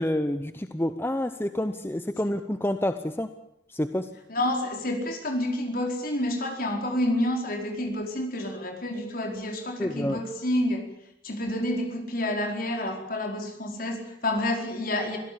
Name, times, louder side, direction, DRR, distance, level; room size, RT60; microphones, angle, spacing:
voice 1, 0.0-3.3 3.7-4.1 9.8-10.2, left 1 dB, 10° left, 9 dB, 0.8 m, -28 dB
voice 2, 4.3-10.9 11.2-15.2, left 1 dB, 50° left, 3 dB, 4.7 m, -29 dB
25.0 x 17.0 x 8.7 m, 0.78 s
head